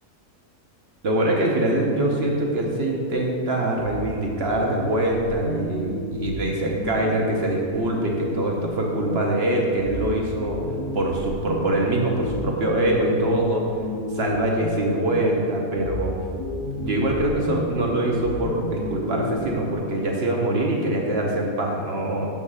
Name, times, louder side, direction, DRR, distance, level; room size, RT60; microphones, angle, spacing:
voice 1, 1.0-10.6 10.9-13.6 14.1-16.1 16.8-22.3, right 1 dB, 50° right, -1 dB, 0.9 m, -24 dB
sound 1, 1.8-3.4 3.8-9.4 9.8-15.4 15.8-19.8, left 1 dB, 60° left, 1.4 m, -32 dB
6.3 x 5.5 x 4.9 m, 2.5 s
omnidirectional pair, 1.7 m